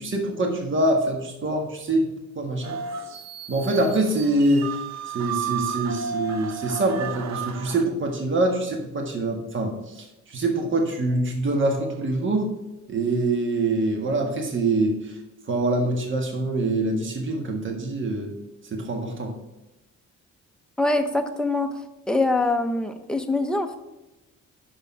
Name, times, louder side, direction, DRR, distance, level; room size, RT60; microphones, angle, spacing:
voice 1, 0.0-2.8 3.5-4.8 5.1-12.5 12.9-15.2 15.5-18.3 18.7-19.3, right 2 dB, 40° right, 2 dB, 1.6 m, -25 dB
sound 1, 2.6-7.8, right 7 dB, 60° right, 0.7 m, -33 dB
voice 2, 20.8-21.7 22.1-23.8, left 2 dB, 5° left, 5 dB, 0.8 m, -23 dB
6.0 x 5.3 x 5.4 m, 0.98 s
cardioid pair, 90°, 30 cm